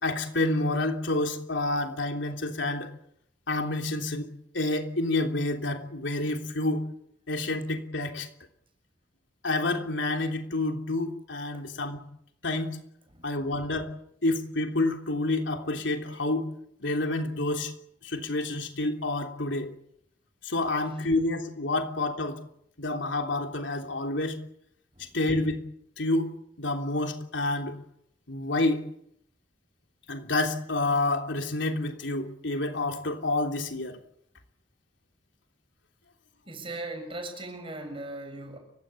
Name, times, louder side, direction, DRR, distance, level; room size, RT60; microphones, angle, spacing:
voice 1, 0.0-2.9 3.5-4.3 4.5-6.8 7.3-8.3 9.4-12.0 12.4-12.8 13.2-13.9 14.2-16.4 16.8-17.7 18.0-19.7 20.4-22.4 22.8-24.3 25.1-25.6 26.0-26.3 26.6-27.8 28.3-28.9 30.1-34.0, left 2 dB, 75° left, 4 dB, 3.3 m, -28 dB
voice 2, 36.5-38.6, right 2 dB, 30° right, 6 dB, 6.9 m, -38 dB
30.0 x 16.5 x 8.5 m, 0.72 s
head